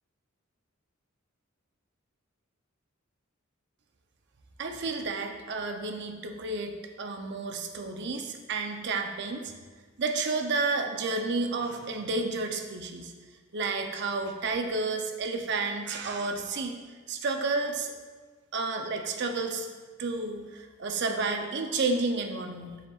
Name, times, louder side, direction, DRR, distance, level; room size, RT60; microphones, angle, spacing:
voice 1, 4.6-9.5 10.0-13.1 13.5-16.8 17.1-17.9 18.5-19.7 20.0-22.8, right 3 dB, 55° right, 5 dB, 0.6 m, -31 dB
6.7 x 6.3 x 2.4 m, 1.4 s
head